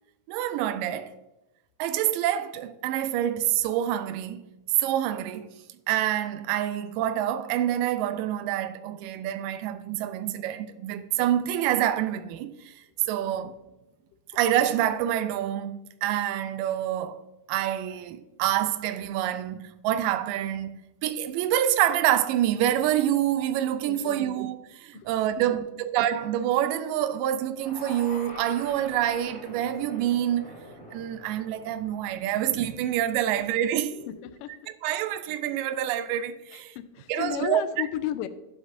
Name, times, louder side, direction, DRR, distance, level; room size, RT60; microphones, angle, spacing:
voice 1, 0.3-1.1 1.8-4.5 4.8-5.5 5.9-12.7 13.1-13.6 14.3-17.2 17.5-30.5 30.9-34.0 34.8-36.8 37.1-37.6, right 11 dB, 85° right, 1.9 m, -27 dB
voice 2, 23.9-24.3 24.9-25.1 25.5-25.6 33.4-33.5 33.9-34.5 36.5-38.3, left 12 dB, 80° left, 2.0 m, -34 dB
sound 1, 27.5-33.8, left 1 dB, 15° right, 2.8 m, -45 dB
11.5 x 8.0 x 2.6 m
omnidirectional pair, 4.4 m